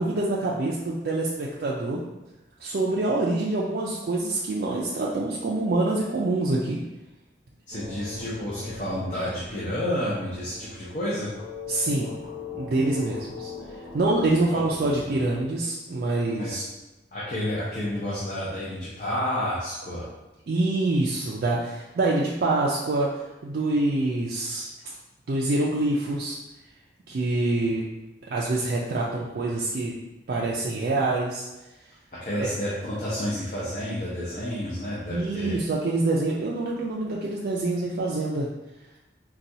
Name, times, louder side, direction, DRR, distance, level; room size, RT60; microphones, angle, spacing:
voice 1, 0.0-2.0 2.6-6.8 11.7-12.1 12.5-13.5 13.9-16.6 20.5-23.1 23.4-24.7 25.3-26.4 27.1-27.9 28.3-30.0 30.3-31.5 32.4-32.5 35.1-38.5, right 2 dB, 55° right, -4 dB, 0.4 m, -26 dB
sound 1, 7.7-15.5, left 4 dB, 70° left, 0.9 m, -40 dB
voice 2, 7.7-11.3 14.5-14.6 16.3-16.7 17.1-20.1 32.2-35.6, left 1 dB, 45° left, -8 dB, 0.6 m, -30 dB
4.0 x 2.3 x 2.6 m, 1.0 s
head